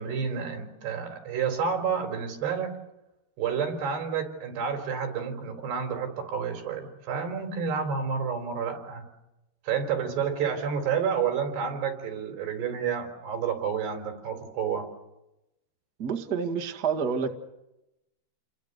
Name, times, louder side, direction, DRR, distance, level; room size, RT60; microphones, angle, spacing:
voice 1, 0.0-2.7 3.4-9.0 9.6-14.9, right 6 dB, 75° right, 5 dB, 5.9 m, -30 dB
voice 2, 16.0-17.3, right 6 dB, 50° right, 4 dB, 1.2 m, -28 dB
29.5 x 22.5 x 6.7 m, 0.92 s
omnidirectional pair, 4.8 m